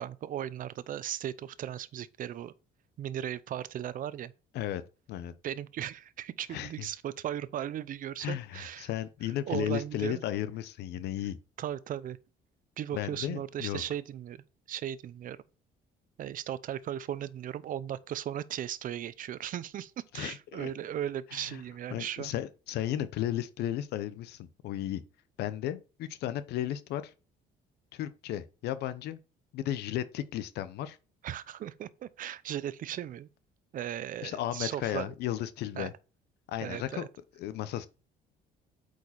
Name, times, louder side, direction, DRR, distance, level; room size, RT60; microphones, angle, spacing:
voice 1, 0.0-2.5 3.0-4.3 5.4-8.9 9.5-10.2 11.6-12.2 12.8-15.4 16.2-22.3 31.2-33.3 33.7-35.1 35.8-35.9 36.6-37.1, right 11 dB, 55° right, 0.6 m, -37 dB
voice 2, 6.5-6.9 8.2-11.4 12.9-13.8 20.1-20.7 21.3-21.6 21.9-25.0 25.4-27.1 27.9-29.2 29.5-31.0 34.2-35.9 36.5-37.1 37.4-37.9, left 12 dB, 75° left, 0.7 m, -34 dB
8.4 x 4.9 x 4.2 m
cardioid pair, 110°, 17 cm